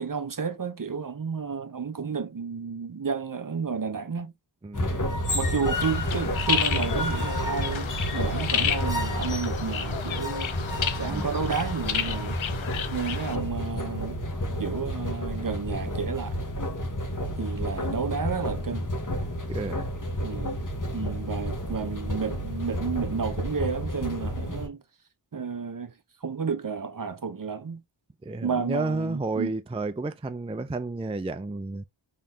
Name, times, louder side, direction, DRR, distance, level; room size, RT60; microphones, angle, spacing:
voice 1, 0.0-4.3 5.3-12.4 12.9-14.2 14.6-16.4 17.4-18.9 20.2-20.6 20.9-24.8 25.3-25.9 26.2-27.8 28.4-29.5, right 5 dB, 45° right, 0.7 m, -31 dB
voice 2, 4.6-4.9 11.1-11.3 19.5-19.9 28.2-31.9, right 3 dB, 15° right, 0.4 m, -31 dB
sound 1, 4.7-24.7, equal, 40° left, 1.3 m, -30 dB
sound 2, 5.7-13.4, left 8 dB, 85° left, 0.7 m, -32 dB
3.8 x 3.2 x 2.7 m
wide cardioid pair, 60°, 46 cm